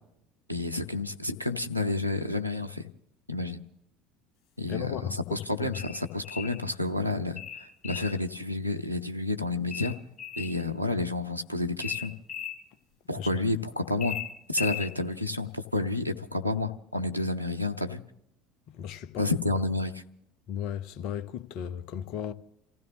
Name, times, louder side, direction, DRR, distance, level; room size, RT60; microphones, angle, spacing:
voice 1, 0.5-2.9 3.3-3.6 4.6-9.9 10.4-12.1 13.1-14.2 14.5-18.0 19.2-20.0, left 2 dB, 90° left, 0.8 m, -30 dB
voice 2, 4.7-5.7 13.1-13.3 18.8-19.3 20.5-22.3, left 9 dB, 50° left, 0.9 m, -35 dB
sound 1, 5.7-6.6 7.4-8.2 9.7-10.6 11.8-12.6 14.0-14.9, left 8 dB, 35° left, 7.7 m, -36 dB
29.5 x 15.5 x 2.9 m
figure-of-eight pair, 65°, 0 cm